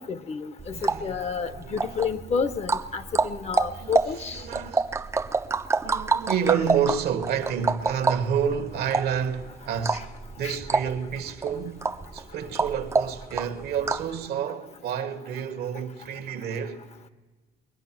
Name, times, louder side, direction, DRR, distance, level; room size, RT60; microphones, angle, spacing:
voice 1, 0.0-4.4 9.9-10.0 10.4-10.6, left 6 dB, 40° left, 0.8 m, -30 dB
sound 1, 0.6-14.2, right 4 dB, 15° right, 0.4 m, -28 dB
voice 2, 0.7-1.2 1.5-2.0 3.7-3.9 4.2-4.9 5.8-11.9 12.1-16.8, right 7 dB, 70° right, 1.1 m, -29 dB
22.0 x 10.0 x 6.0 m
cardioid pair, 110°, 17 cm